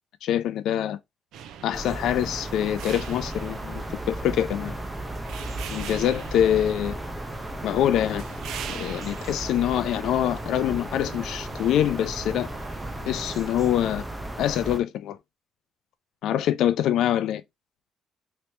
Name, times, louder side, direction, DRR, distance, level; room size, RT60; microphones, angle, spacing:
voice 1, 0.2-1.0 1.6-4.7 5.7-7.0 7.6-8.2 8.7-12.5 13.1-14.0 14.4-15.2 16.2-17.4, left 11 dB, 70° left, 0.4 m, -25 dB
sound 1, 1.3-13.5, right 8 dB, 75° right, 0.4 m, -43 dB
sound 2, 1.7-14.8, right 1 dB, 5° right, 0.4 m, -35 dB
3.2 x 3.0 x 3.0 m
cardioid pair, 170°, 0 cm